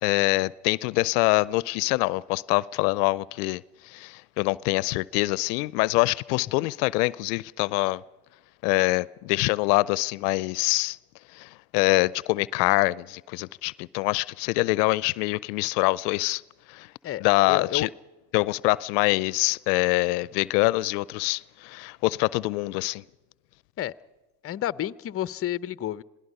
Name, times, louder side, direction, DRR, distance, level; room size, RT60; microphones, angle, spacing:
voice 1, 0.0-8.0 8.6-11.0 11.3-16.4 16.7-16.9 17.2-17.9 18.3-23.0, left 22 dB, 75° left, 0.6 m, -25 dB
voice 2, 17.0-17.9 23.8-23.9 24.4-26.0, left 12 dB, 30° left, 0.6 m, -30 dB
27.0 x 18.0 x 5.4 m
hypercardioid pair, 75°, 48 cm